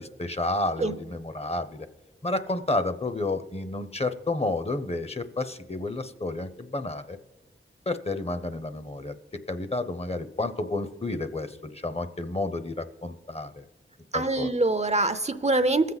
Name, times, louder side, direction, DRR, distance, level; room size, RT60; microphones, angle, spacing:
voice 1, 0.0-1.9 2.2-7.2 7.9-9.1 9.5-13.6 14.1-14.5, left 2 dB, 30° left, 10 dB, 0.7 m, -30 dB
voice 2, 14.1-15.9, right 2 dB, 35° right, 12 dB, 0.5 m, -24 dB
19.0 x 7.4 x 4.0 m, 1.1 s
wide cardioid pair, 50°, 21 cm